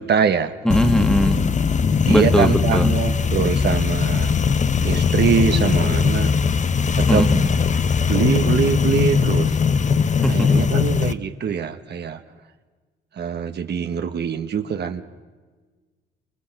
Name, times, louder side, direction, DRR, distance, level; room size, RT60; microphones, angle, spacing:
voice 1, 0.0-0.5 1.3-1.5 2.0-4.3 4.8-6.3 7.0-7.3 8.1-9.6 10.3-12.2 13.2-15.0, right 7 dB, 55° right, 7 dB, 1.5 m, -23 dB
sound 1, 0.7-11.1, left 6 dB, 40° left, 1.0 m, -20 dB
voice 2, 0.7-1.4 2.1-2.9 7.1-7.4 10.2-10.6, equal, 5° left, 6 dB, 2.0 m, -20 dB
30.0 x 27.5 x 6.1 m, 1.4 s
cardioid pair, 90°, 20 cm